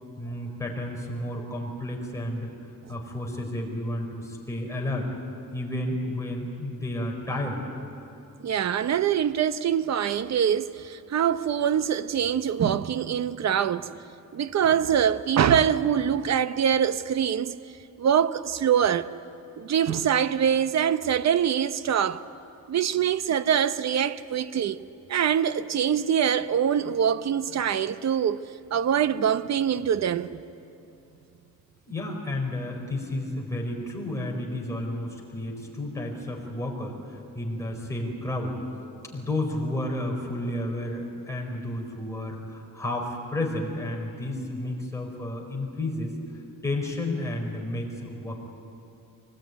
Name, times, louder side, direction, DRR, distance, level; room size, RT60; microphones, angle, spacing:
voice 1, 0.2-2.5 2.9-5.1 5.5-7.6 31.9-38.6 39.1-46.2 46.6-48.4, left 1 dB, 10° left, 4.4 m, -31 dB
voice 2, 8.4-13.9 14.3-17.6 18.0-19.1 19.6-22.2 22.7-24.8 25.1-28.4 28.7-30.4, right 8 dB, 55° right, 0.8 m, -24 dB
24.0 x 19.0 x 9.3 m
wide cardioid pair, 145°, 33 cm